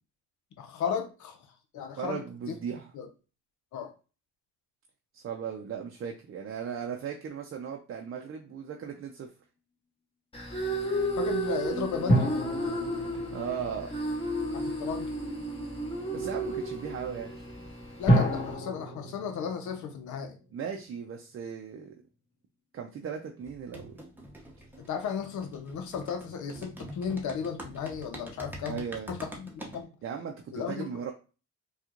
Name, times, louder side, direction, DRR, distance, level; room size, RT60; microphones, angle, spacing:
voice 1, 0.6-1.4 1.7-2.2 2.5-2.6 2.9-3.1 3.7-3.9 11.2-12.3 14.5-15.2 18.0-20.4 24.9-28.8 29.1-29.9 30.5-30.9, left 7 dB, 75° left, 6 dB, 0.8 m, -35 dB
voice 2, 2.0-2.9 5.1-9.3 13.3-13.9 16.1-17.3 20.5-21.9 22.7-24.0 28.6-29.2 30.0-31.1, right 7 dB, 45° right, 2 dB, 0.6 m, -37 dB
sound 1, 10.3-18.5, right 1 dB, 20° left, 1.2 m, -33 dB
sound 2, 12.1-14.7 18.1-20.7 21.0-21.1, right 1 dB, 35° left, 1.7 m, -29 dB
sound 3, 23.4-29.8, equal, 5° right, 0.9 m, -45 dB
4.4 x 2.4 x 2.4 m, 0.33 s
cardioid pair, 90°, 30 cm